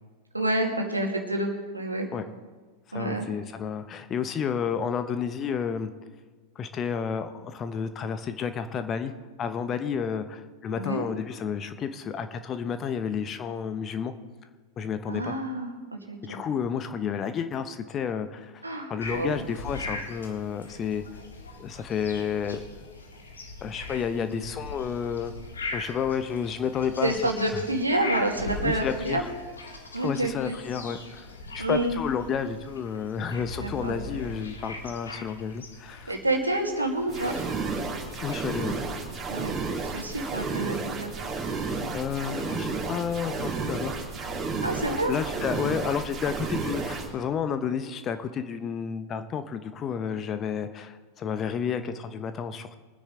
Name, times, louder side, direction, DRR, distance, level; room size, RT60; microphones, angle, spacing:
voice 1, 0.3-2.1 2.9-3.3 10.7-11.1 15.1-16.4 18.6-19.4 27.0-29.2 29.9-30.6 31.6-32.0 33.6-33.9 36.1-37.4 39.3-39.5 39.8-41.1 44.6-45.2, right 1 dB, 85° right, 2 dB, 2.1 m, -28 dB
voice 2, 2.9-5.9 6.5-9.1 9.4-14.1 14.8-15.4 16.2-18.6 18.9-21.0 21.6-23.0 23.6-25.3 25.7-27.1 27.5-27.6 28.6-29.3 30.0-36.1 38.2-38.8 41.6-44.0 45.1-52.7, left 7 dB, 30° left, 10 dB, 1.0 m, -31 dB
sound 1, 19.0-38.5, left 3 dB, 70° left, 2.0 m, -40 dB
sound 2, 37.1-47.1, right 4 dB, 20° right, 3.0 m, -32 dB
23.5 x 9.9 x 3.9 m, 1.4 s
figure-of-eight pair, 90°, 0 cm